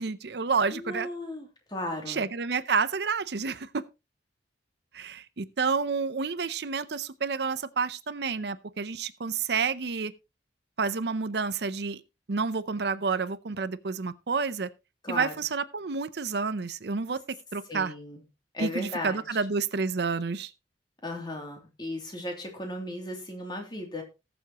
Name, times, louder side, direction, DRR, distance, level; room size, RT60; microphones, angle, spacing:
voice 1, 0.0-1.1 2.1-3.8 4.9-10.1 10.8-12.0 12.3-14.7 15.1-17.2 17.5-17.9 18.6-20.5, right 5 dB, 60° right, 0.6 m, -29 dB
voice 2, 0.7-2.2 15.0-15.3 17.7-18.2 18.5-19.2 21.0-24.0, left 1 dB, 25° left, 2.9 m, -36 dB
19.5 x 7.1 x 3.0 m
head